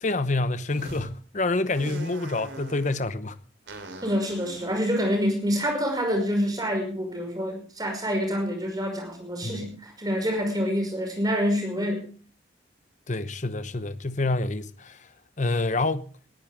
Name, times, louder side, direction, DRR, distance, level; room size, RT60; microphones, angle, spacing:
voice 1, 0.0-3.4 9.4-9.7 13.1-15.1 15.4-16.1, left 2 dB, 40° left, 0.9 m, -27 dB
sound 1, 0.7-1.1 1.7-3.0 3.7-6.0, right 2 dB, 80° right, 3.6 m, -42 dB
voice 2, 4.0-12.1, equal, 20° right, 5.7 m, -27 dB
20.5 x 13.5 x 3.6 m
head